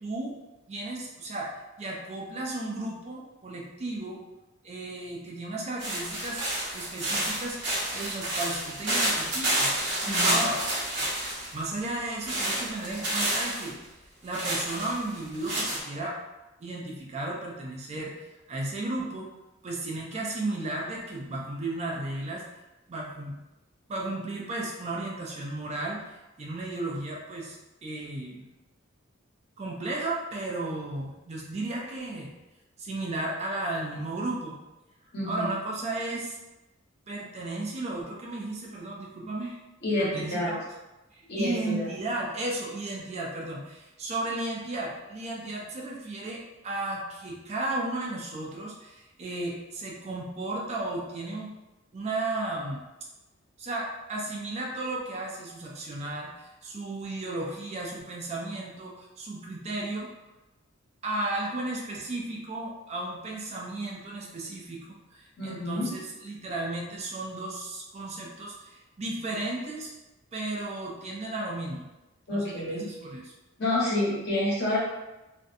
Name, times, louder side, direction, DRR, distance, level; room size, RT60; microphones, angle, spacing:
voice 1, 0.0-0.3 0.7-1.5 1.8-4.2 4.6-6.4 6.7-10.6 11.5-13.8 14.2-16.2 16.6-18.1 18.5-19.3 19.6-22.4 22.9-23.4 23.9-27.6 27.8-28.5 29.6-32.3 32.8-34.6 35.3-36.4 37.1-39.6 40.0-40.6 41.1-51.5 51.9-52.8 53.6-60.1 61.0-69.9 70.3-71.9 72.3-73.3, right 2 dB, 35° right, -2 dB, 0.4 m, -34 dB
sound 1, 5.8-11.7 12.3-13.7 14.3-15.8, right 1 dB, 60° right, 0.8 m, -29 dB
voice 2, 10.0-10.4 35.1-35.5 39.8-40.5 41.3-41.9 65.4-65.9 72.3-72.9 73.6-74.8, left 1 dB, 55° left, -8 dB, 1.1 m, -28 dB
2.5 x 2.1 x 2.5 m, 1.0 s
head